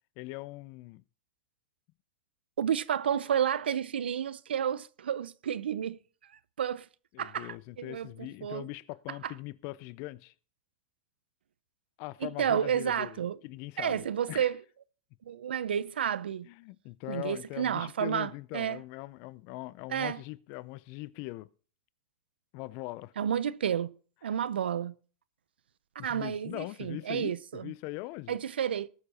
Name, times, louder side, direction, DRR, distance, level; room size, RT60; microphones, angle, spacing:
voice 1, 0.2-1.0 7.1-10.3 12.0-14.5 16.4-21.5 22.5-23.1 26.0-28.4, left 20 dB, 50° left, 0.6 m, -41 dB
voice 2, 2.6-6.0 6.6-6.9 7.2-8.7 9.2-9.3 12.2-13.4 13.8-14.6 15.3-16.5 17.1-18.8 19.9-20.2 23.2-23.9 24.2-24.9 26.0-27.7 28.3-28.9, right 9 dB, 90° right, 0.6 m, -31 dB
19.0 x 6.8 x 4.3 m
hypercardioid pair, 120°, 5 cm